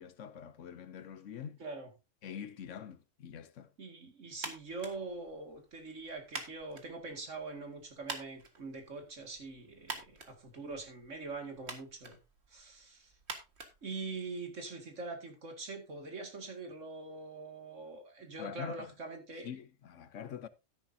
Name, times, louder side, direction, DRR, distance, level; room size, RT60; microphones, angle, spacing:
voice 1, 0.0-1.6 2.2-3.7 18.4-18.9 19.4-20.5, left 8 dB, 75° left, 1.2 m, -45 dB
voice 2, 1.6-1.9 3.8-12.2 12.5-13.1 13.8-19.5, right 3 dB, 75° right, 2.5 m, -43 dB
sound 1, 4.3-14.6, right 3 dB, 55° right, 2.0 m, -48 dB
12.5 x 10.0 x 2.7 m
omnidirectional pair, 1.3 m